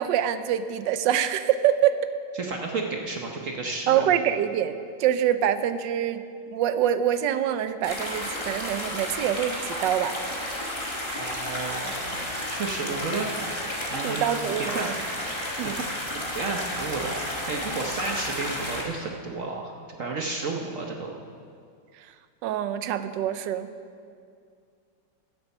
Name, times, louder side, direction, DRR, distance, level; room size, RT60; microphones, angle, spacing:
voice 1, 0.0-2.1 3.9-4.7 5.0-6.2 6.5-10.2 14.0-14.9 15.6-15.7 22.4-23.7, right 10 dB, 75° right, 11 dB, 1.2 m, -25 dB
voice 2, 2.4-4.1 11.1-13.6 13.9-15.0 15.7-15.8 16.1-21.2, right 3 dB, 55° right, 1 dB, 1.0 m, -32 dB
sound 1, 7.8-18.8, left 1 dB, 15° left, 1.6 m, -32 dB
14.0 x 8.0 x 5.4 m, 2.2 s
omnidirectional pair, 2.2 m